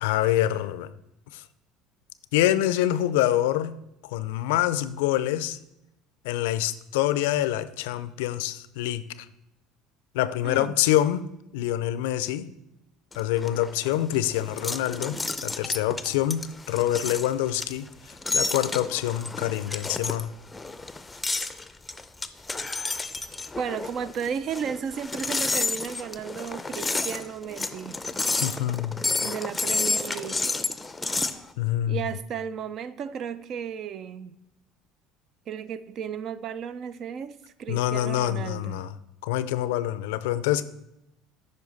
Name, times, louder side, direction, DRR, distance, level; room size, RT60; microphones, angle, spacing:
voice 1, 0.0-0.9 1.3-1.4 2.3-3.8 4.0-5.6 6.2-9.3 10.1-11.2 11.5-12.5 13.2-17.9 18.3-20.3 28.4-29.0 31.6-32.1 37.7-38.9 39.2-40.6, left 13 dB, 80° left, 15 dB, 0.4 m, -26 dB
voice 2, 10.4-10.8 23.5-28.0 29.2-30.5 31.9-34.4 35.5-38.9, right 7 dB, 50° right, 15 dB, 0.4 m, -34 dB
sound 1, 13.1-31.4, left 3 dB, 15° left, 0.5 m, -30 dB
8.8 x 5.4 x 4.0 m, 0.86 s
hypercardioid pair, 80°, 0 cm